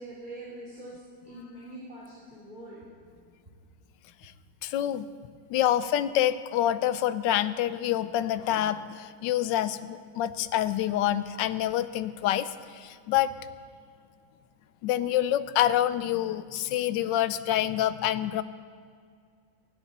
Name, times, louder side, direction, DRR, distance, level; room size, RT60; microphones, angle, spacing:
voice 1, 0.0-2.8, right 1 dB, 25° right, -7 dB, 2.9 m, -44 dB
voice 2, 4.6-5.1 5.5-13.3 14.8-18.4, left 12 dB, 90° left, 14 dB, 1.3 m, -27 dB
23.5 x 10.0 x 4.1 m, 2.2 s
omnidirectional pair, 1.9 m